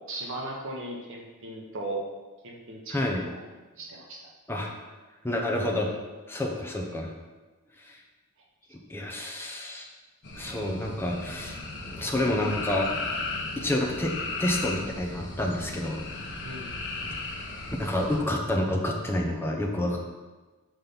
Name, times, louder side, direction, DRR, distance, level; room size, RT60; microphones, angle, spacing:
voice 1, 0.1-2.0 2.4-3.0 3.3-3.4 3.8-4.3 16.4-16.7, right 2 dB, 60° right, -1 dB, 1.1 m, -37 dB
voice 2, 2.9-3.2 4.5-4.7 5.2-5.9 6.3-7.1 7.9-8.0 8.9-9.9 10.3-11.6 11.8-12.9 13.6-14.1 14.4-16.0 17.8-20.0, left 1 dB, 10° left, -1 dB, 0.8 m, -28 dB
sound 1, 10.2-18.2, left 3 dB, 50° left, 1.1 m, -36 dB
6.0 x 4.2 x 5.3 m, 1.2 s
head